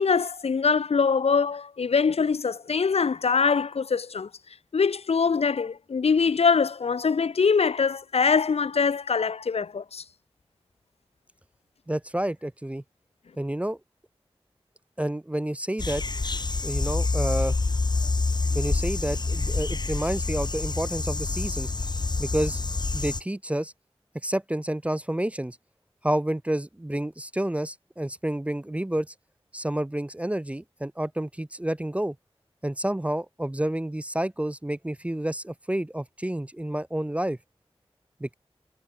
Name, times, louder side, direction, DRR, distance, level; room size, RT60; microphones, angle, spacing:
voice 1, 0.0-4.3 4.7-10.0, left 5 dB, 75° left, 0.6 m, -23 dB
voice 2, 11.9-12.8 13.4-13.8 15.0-16.0 16.6-17.6 18.5-21.7 22.2-22.6 22.9-23.7 24.2-25.6 26.0-29.1 29.5-32.2 32.6-37.4 38.2-38.3, right 1 dB, 10° right, 0.4 m, -29 dB
sound 1, 15.8-23.2, left 3 dB, 45° left, 0.9 m, -27 dB
wide cardioid pair, 70°, 11 cm